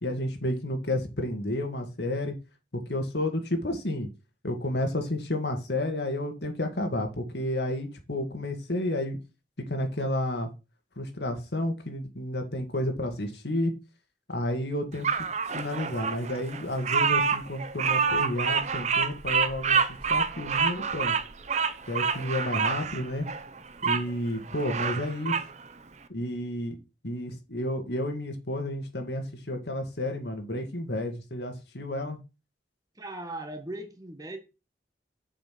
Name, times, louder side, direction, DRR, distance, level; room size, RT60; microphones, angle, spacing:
voice 1, 0.0-2.3 2.9-4.1 4.4-9.2 9.7-10.5 11.0-13.7 14.3-15.1 15.5-19.8 20.1-21.2 21.9-23.3 23.8-25.3 26.1-26.8 27.0-32.2, left 1 dB, 75° left, 2.1 m, -31 dB
Bird vocalization bird call bird song, 15.0-24.0 24.5-25.5, right 6 dB, 40° right, 0.7 m, -27 dB
voice 2, 32.9-34.4, right 1 dB, 20° right, 1.4 m, -38 dB
7.4 x 5.8 x 6.1 m
head